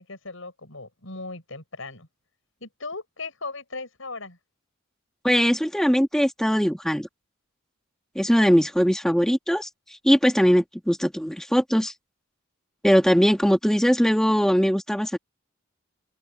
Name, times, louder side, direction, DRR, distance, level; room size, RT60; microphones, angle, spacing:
voice 1, 0.0-2.1 2.6-4.4, left 3 dB, 85° left, 6.4 m, -37 dB
voice 2, 5.2-7.1 8.1-9.7 10.0-11.9 12.8-15.2, equal, 5° left, 1.5 m, -20 dB
open air
head